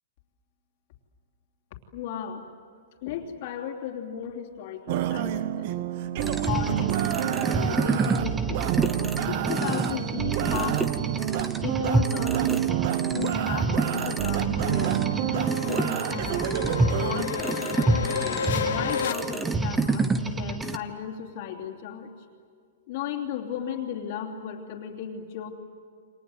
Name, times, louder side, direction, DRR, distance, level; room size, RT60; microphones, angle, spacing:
voice 1, 1.9-2.5 3.0-5.7 6.5-8.6 9.2-10.9 11.6-12.4 13.0-15.0 15.3-16.6 16.9-18.0 18.5-22.1 22.9-25.5, left 9 dB, 40° left, 0 dB, 2.9 m, -35 dB
sound 1, 4.9-17.2, right 12 dB, 40° right, 1.0 m, -28 dB
sound 2, 6.2-20.8, right 3 dB, 5° right, 1.0 m, -28 dB
sound 3, 12.5-19.1, left 7 dB, 80° left, 3.4 m, -33 dB
29.0 x 26.0 x 8.0 m, 2.2 s
hypercardioid pair, 175°, 0 cm